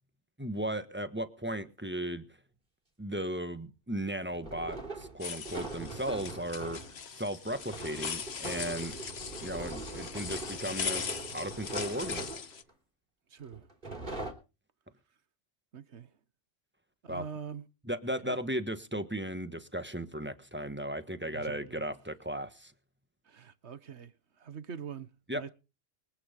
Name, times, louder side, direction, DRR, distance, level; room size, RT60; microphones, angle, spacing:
voice 1, 0.4-2.2 3.0-8.9 9.4-12.3 17.1-17.2 17.9-22.7 25.3-25.4, right 1 dB, 10° right, 1.4 m, -36 dB
sound 1, 1.6-1.7 4.3-7.0 7.5-12.7 13.5-14.3, right 2 dB, 45° right, 4.1 m, -42 dB
sound 2, 5.2-12.6, left 6 dB, 60° left, 1.3 m, -40 dB
voice 2, 13.3-14.1 15.7-16.1 17.0-17.6 18.2-18.4 21.2-21.9 23.2-25.1 25.3-25.5, right 7 dB, 60° right, 1.5 m, -44 dB
24.0 x 9.3 x 5.3 m
omnidirectional pair, 1.3 m